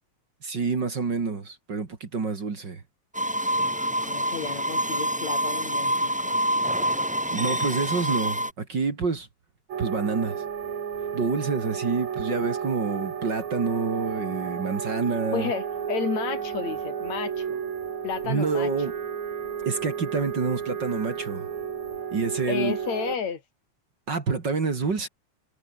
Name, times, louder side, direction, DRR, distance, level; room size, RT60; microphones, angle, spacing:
voice 1, 0.4-2.8 7.3-9.3 9.8-10.4 11.1-15.5 18.2-18.9 19.7-21.5 22.1-22.7 24.1-25.1, right 4 dB, 40° right, 2.9 m, -27 dB
sound 1, 3.1-8.5, equal, 5° right, 1.5 m, -26 dB
voice 2, 4.0-6.5 15.3-17.6 18.0-18.7 22.5-23.4, left 7 dB, 65° left, 3.6 m, -32 dB
sound 2, 9.7-23.2, right 7 dB, 70° right, 3.8 m, -32 dB
omnidirectional pair, 3.4 m